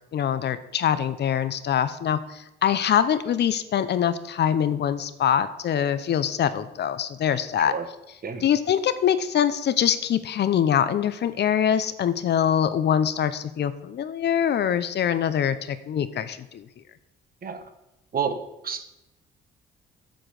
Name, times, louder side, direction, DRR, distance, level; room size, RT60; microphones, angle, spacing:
voice 1, 0.1-7.7 8.4-16.6, left 9 dB, 60° left, 13 dB, 0.7 m, -24 dB
voice 2, 18.1-18.9, right 6 dB, 45° right, 8 dB, 1.3 m, -30 dB
7.8 x 7.1 x 6.4 m, 0.91 s
cardioid pair, 90°, 20 cm